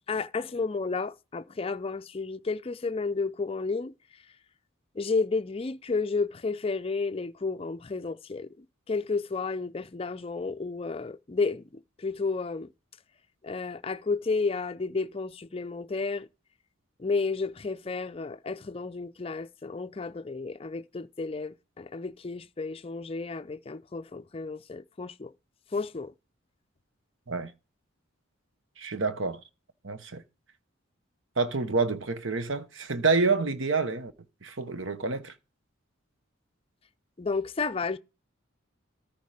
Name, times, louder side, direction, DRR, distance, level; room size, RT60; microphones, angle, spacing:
voice 1, 0.1-3.9 5.0-8.5 8.9-11.6 12.0-12.7 13.4-16.3 17.0-25.3 25.7-26.1 37.2-38.0, left 4 dB, 25° left, 0.4 m, -32 dB
voice 2, 28.8-29.4 29.8-30.2 31.4-34.1 34.4-35.3, right 4 dB, 65° right, 1.1 m, -28 dB
13.5 x 4.6 x 4.9 m
head